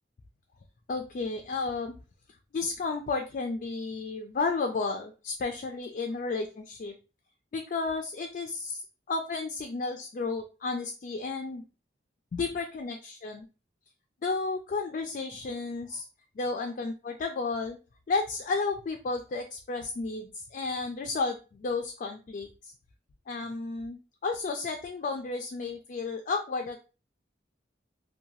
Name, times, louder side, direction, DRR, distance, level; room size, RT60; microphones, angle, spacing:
voice 1, 0.9-2.0 2.5-6.9 7.5-11.6 12.3-13.5 14.2-16.0 16.4-17.8 18.1-22.7 23.3-26.8, left 4 dB, 50° left, 4 dB, 0.3 m, -32 dB
2.7 x 2.2 x 2.9 m, 0.33 s
head